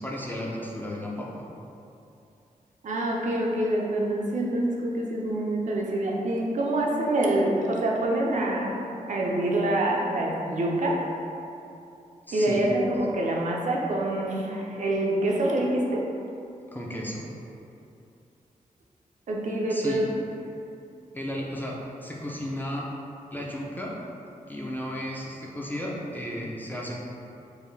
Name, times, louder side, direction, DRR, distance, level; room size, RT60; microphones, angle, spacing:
voice 1, 0.0-1.5 12.3-12.6 16.7-17.4 19.7-20.0 21.1-22.9 23.3-24.0 24.5-27.0, equal, 15° left, -3 dB, 0.4 m, -34 dB
voice 2, 2.8-8.7 9.1-11.0 12.3-16.0 19.3-20.1, right 1 dB, 60° right, -2 dB, 0.5 m, -26 dB
4.6 x 2.6 x 3.2 m, 2.7 s
wide cardioid pair, 175°, 14 cm